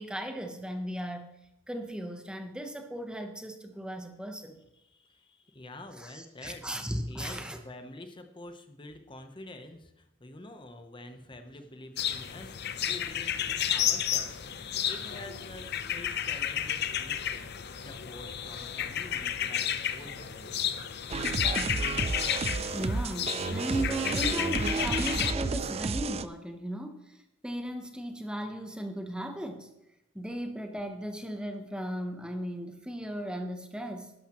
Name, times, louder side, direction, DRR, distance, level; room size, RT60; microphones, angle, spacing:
voice 1, 0.0-1.3 1.7-4.6 6.0-7.6 22.7-27.2 27.4-29.7 30.1-34.1, right 1 dB, 5° right, 5 dB, 0.8 m, -36 dB
voice 2, 4.7-17.5 17.8-20.6, left 1 dB, 25° left, 7 dB, 0.8 m, -47 dB
sound 1, 11.7-17.1 17.4-25.8, left 2 dB, 80° left, 3.2 m, -55 dB
sound 2, 12.0-25.3, left 9 dB, 55° left, 0.7 m, -32 dB
sound 3, 21.1-26.3, right 4 dB, 30° right, 0.4 m, -31 dB
12.0 x 11.5 x 3.0 m, 0.88 s
head